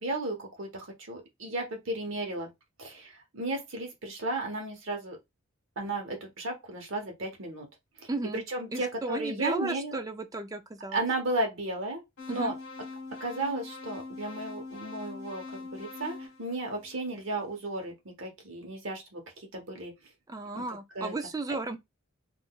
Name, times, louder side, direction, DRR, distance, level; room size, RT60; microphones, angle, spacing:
voice 1, 0.0-2.5 2.8-5.2 5.8-7.7 8.0-10.0 10.9-12.0 12.3-12.5 13.2-19.2 19.5-19.9 20.5-20.6 20.9-21.1, right 2 dB, 65° right, 0.9 m, -34 dB
voice 2, 8.1-8.4 8.7-11.0 12.3-12.5 20.3-21.8, right 2 dB, 15° right, 0.3 m, -34 dB
sound 1, 12.2-17.3, left 3 dB, 70° left, 1.4 m, -43 dB
3.6 x 2.5 x 2.3 m
head